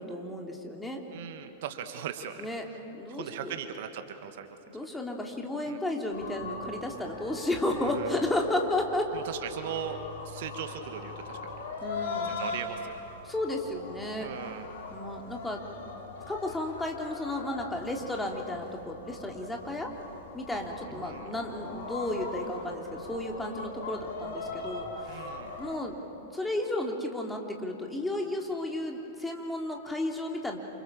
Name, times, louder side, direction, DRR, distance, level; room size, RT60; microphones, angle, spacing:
voice 1, 0.0-1.0 2.4-2.6 2.9-3.6 4.7-9.1 11.8-12.4 13.2-14.3 14.9-15.6 16.3-19.9 20.3-25.2 25.6-26.0 26.3-30.6, left 1 dB, 10° left, 1 dB, 3.4 m, -33 dB
voice 2, 1.1-2.4 3.1-4.5 5.7-5.8 7.8-8.1 9.1-10.0 10.2-11.6 12.3-13.0 14.2-14.7 20.9-21.3 25.1-25.5, right 9 dB, 55° right, 8 dB, 1.7 m, -39 dB
sound 1, 6.1-25.8, left 3 dB, 65° left, 4.5 m, -41 dB
28.5 x 28.0 x 7.2 m, 3.0 s
figure-of-eight pair, 100°, 0 cm